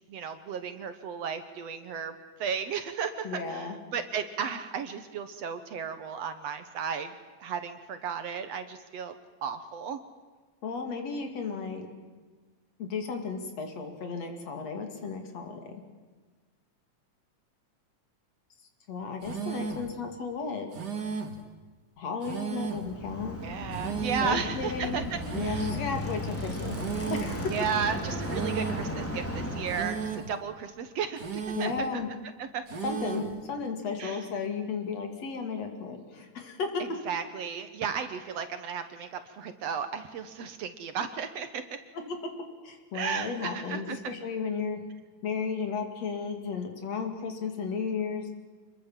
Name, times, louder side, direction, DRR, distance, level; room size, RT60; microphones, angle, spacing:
voice 1, 0.1-7.1 7.4-9.1 9.4-10.0 23.4-25.8 27.5-32.0 32.4-32.6 34.0-34.3 37.1-41.6 42.9-44.0, right 7 dB, 65° right, 9 dB, 2.1 m, -34 dB
voice 2, 3.2-3.8 10.6-11.9 12.8-15.7 18.9-20.7 22.0-23.4 24.2-27.6 31.6-32.1 32.8-36.8 42.1-42.2 42.6-44.8 45.2-48.3, left 5 dB, 60° left, 4 dB, 3.6 m, -34 dB
sound 1, 19.2-19.9 20.7-21.4 22.2-22.9 23.7-24.4 25.2-25.9 26.7-27.4 28.2-28.9 29.7-30.4 31.2-31.9 32.7-33.4, right 5 dB, 40° right, 2.1 m, -34 dB
Bicycle, 22.6-30.2, equal, 5° left, 2.5 m, -35 dB
26.5 x 21.5 x 7.5 m, 1.4 s
omnidirectional pair, 3.5 m